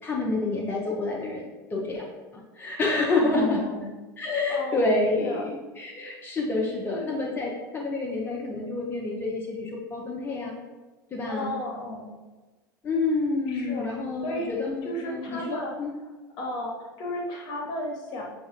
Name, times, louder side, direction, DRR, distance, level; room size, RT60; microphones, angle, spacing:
voice 1, 0.0-1.4 1.7-2.0 2.3-3.6 4.2-10.6 11.1-11.5 12.8-15.9, left 3 dB, 20° left, -3 dB, 0.7 m, -28 dB
voice 2, 3.1-3.9 4.5-5.4 6.9-7.1 11.3-12.1 13.5-13.9 14.2-14.5 14.8-15.7 16.4-18.2, left 1 dB, 45° left, -1 dB, 1.1 m, -34 dB
6.6 x 2.5 x 2.8 m, 1.2 s
figure-of-eight pair, 75°, 11 cm